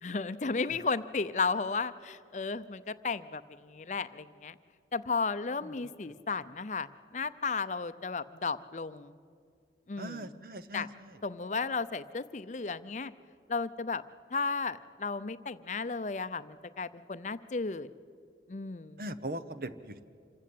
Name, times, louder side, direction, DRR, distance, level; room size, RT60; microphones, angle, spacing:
voice 1, 0.0-4.6 4.9-9.2 9.9-10.4 10.7-10.9 11.2-13.1 13.5-14.0 14.3-17.9 18.5-19.0, left 4 dB, 40° left, 13 dB, 0.6 m, -34 dB
voice 2, 10.0-10.9 19.0-20.0, right 1 dB, 55° right, 12 dB, 0.9 m, -39 dB
26.5 x 15.0 x 8.6 m, 2.3 s
head